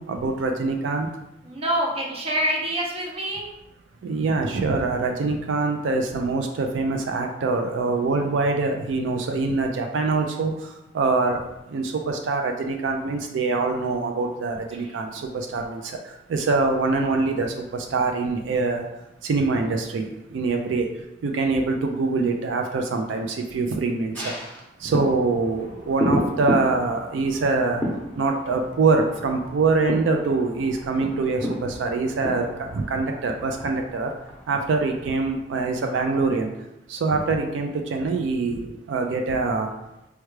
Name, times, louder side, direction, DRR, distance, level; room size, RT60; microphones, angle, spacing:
voice 1, 0.1-1.1 4.0-10.5 10.9-11.4 11.7-15.1 15.5-15.8 16.3-17.5 17.9-18.8 19.2-20.0 20.3-20.9 21.2-23.3 23.5-24.1 24.8-27.8 28.2-32.5 32.7-34.1 34.5-36.5 36.9-38.6 38.9-39.7, right 3 dB, 80° right, 4 dB, 0.4 m, -24 dB
voice 2, 1.4-3.5 14.7-14.9, right 1 dB, 30° right, 0 dB, 0.6 m, -26 dB
sound 1, 24.1-35.8 36.2-36.3, equal, 10° left, 0.7 m, -33 dB
4.5 x 2.2 x 3.2 m, 0.93 s
head